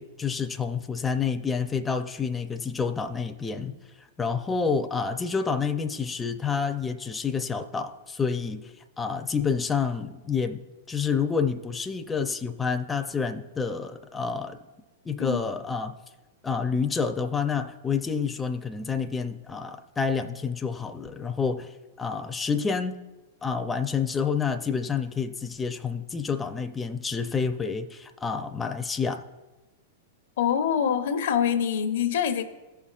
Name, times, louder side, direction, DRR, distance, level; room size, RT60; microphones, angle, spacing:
voice 1, 0.0-3.8 4.2-10.6 10.9-14.6 15.0-15.9 16.4-23.0 23.4-29.2, left 5 dB, 15° left, 7 dB, 0.5 m, -28 dB
voice 2, 30.4-32.4, left 8 dB, 70° left, 8 dB, 0.8 m, -25 dB
15.5 x 5.7 x 2.4 m, 1.1 s
hypercardioid pair, 120°, 0 cm